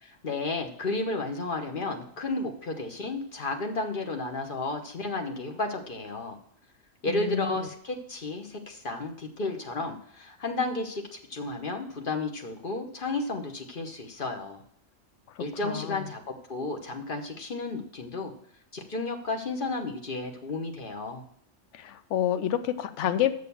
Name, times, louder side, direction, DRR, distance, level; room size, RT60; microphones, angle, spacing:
voice 1, 0.0-6.4 7.0-14.6 15.4-18.3 18.7-21.2, left 3 dB, 45° left, 4 dB, 1.2 m, -33 dB
voice 2, 7.1-7.6 15.4-16.0 21.7-23.3, left 10 dB, 75° left, 11 dB, 1.0 m, -29 dB
6.6 x 6.5 x 6.9 m, 0.65 s
omnidirectional pair, 1.2 m